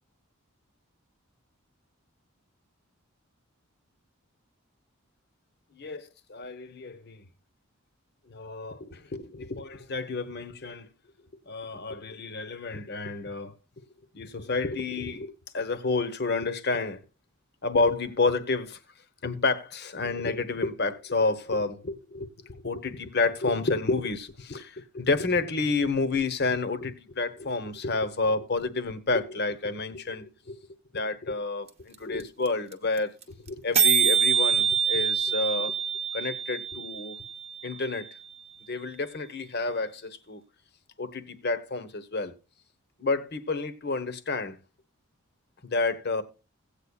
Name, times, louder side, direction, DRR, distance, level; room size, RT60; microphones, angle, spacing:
voice 1, 5.8-7.2 8.3-10.9 11.5-13.5 14.1-17.0 17.6-18.8 19.2-30.6 30.9-33.1 33.5-35.7 36.1-37.1 37.6-38.1 38.7-40.4 41.0-42.3 43.0-44.6 45.6-46.2, left 3 dB, 50° left, 1.0 m, -30 dB
sound 1, 31.7-31.8 31.9-32.0 32.2-32.5 32.7-32.8 33.0-33.2 33.5-33.6 33.7-37.7, right 7 dB, 30° right, 0.9 m, -25 dB
17.0 x 8.4 x 2.4 m
head